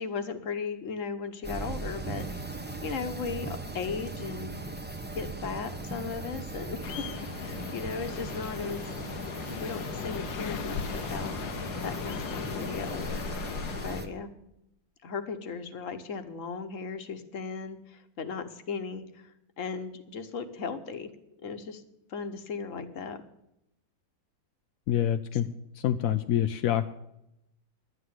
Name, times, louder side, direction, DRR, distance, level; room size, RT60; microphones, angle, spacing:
voice 1, 0.0-4.6 5.1-8.8 9.6-11.4 11.8-14.3 15.0-21.1 21.4-21.8 22.1-23.2 25.3-25.4, left 5 dB, 50° left, 9 dB, 1.3 m, -37 dB
sound 1, 1.4-14.1, right 3 dB, 15° right, 0.3 m, -39 dB
sound 2, 6.8-14.0, left 7 dB, 85° left, 1.6 m, -37 dB
voice 2, 24.9-25.5 25.8-26.9, left 10 dB, 70° left, 8 dB, 0.8 m, -26 dB
11.5 x 9.5 x 7.8 m, 0.84 s
omnidirectional pair, 2.0 m